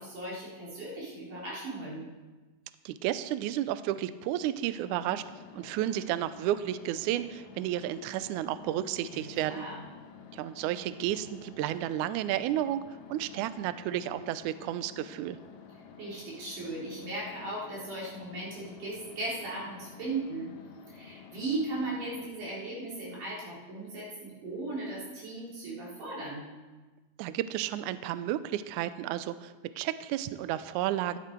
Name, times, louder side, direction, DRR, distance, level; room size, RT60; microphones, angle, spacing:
voice 1, 0.0-2.1 9.1-9.8 16.0-20.5 20.9-26.5, right 2 dB, 60° right, -6 dB, 4.8 m, -37 dB
voice 2, 2.8-5.2 5.5-9.6 10.3-12.8 13.1-15.4 27.2-31.2, right 12 dB, 90° right, 14 dB, 1.7 m, -32 dB
sound 1, 4.8-22.3, left 8 dB, 85° left, 2.6 m, -51 dB
13.0 x 10.5 x 4.5 m, 1.2 s
omnidirectional pair, 4.1 m